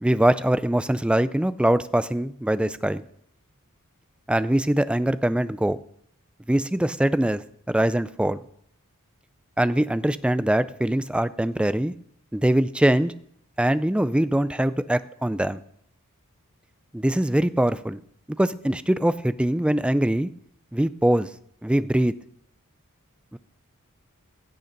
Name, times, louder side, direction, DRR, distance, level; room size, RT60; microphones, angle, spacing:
voice 1, 0.0-3.0 4.3-5.8 6.5-8.4 9.6-11.9 12.3-13.1 13.6-15.6 16.9-18.0 18.4-20.3 20.7-21.3 21.6-22.1 23.3-23.4, right 1 dB, 5° right, 14 dB, 0.4 m, -22 dB
16.0 x 6.7 x 5.2 m, 0.67 s
head